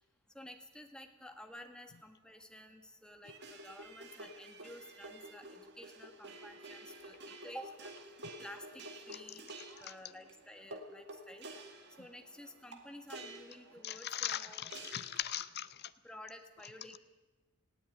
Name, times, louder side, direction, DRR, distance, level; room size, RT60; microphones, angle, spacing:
voice 1, 0.3-7.9 8.4-9.5 9.8-11.5 12.0-14.7 16.0-17.0, left 1 dB, 5° left, 4 dB, 1.8 m, -52 dB
sound 1, 3.2-15.2, right 2 dB, 55° right, 2.2 m, -50 dB
voice 2, 13.8-15.9, left 11 dB, 50° left, 12 dB, 0.7 m, -39 dB
19.0 x 16.0 x 9.2 m, 1.1 s
head